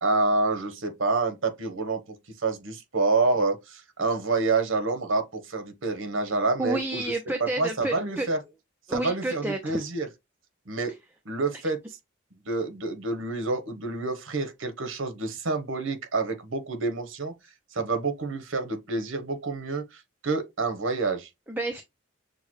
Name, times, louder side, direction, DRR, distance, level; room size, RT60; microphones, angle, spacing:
voice 1, 0.0-7.0 7.4-8.4 8.9-10.1 10.7-10.9 11.2-11.8 12.5-17.3 17.7-21.3, right 3 dB, 70° right, 1.1 m, -28 dB
voice 2, 6.6-8.3 8.9-9.8 21.5-21.8, right 2 dB, 10° right, 0.5 m, -30 dB
6.6 x 2.2 x 3.1 m
head